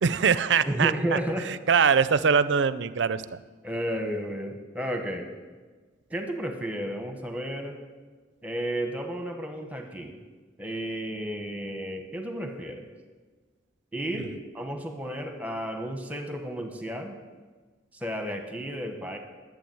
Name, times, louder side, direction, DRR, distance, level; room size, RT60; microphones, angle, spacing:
voice 1, 0.0-0.9 1.5-3.2, right 6 dB, 70° right, 15 dB, 0.5 m, -22 dB
voice 2, 0.6-1.5 3.6-5.3 6.1-7.8 8.4-10.2 10.6-12.9 13.9-17.1 17.9-19.2, equal, 10° right, 4 dB, 1.1 m, -32 dB
11.5 x 7.6 x 7.7 m, 1.4 s
head